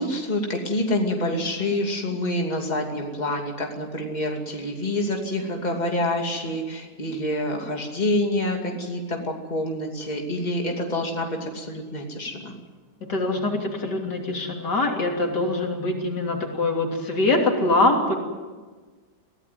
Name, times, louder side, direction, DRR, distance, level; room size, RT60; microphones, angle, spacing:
voice 1, 0.0-12.5, left 1 dB, 25° left, 1 dB, 2.7 m, -27 dB
voice 2, 13.0-18.1, left 2 dB, 80° left, 1 dB, 3.6 m, -23 dB
23.0 x 16.5 x 9.5 m, 1.4 s
omnidirectional pair, 1.8 m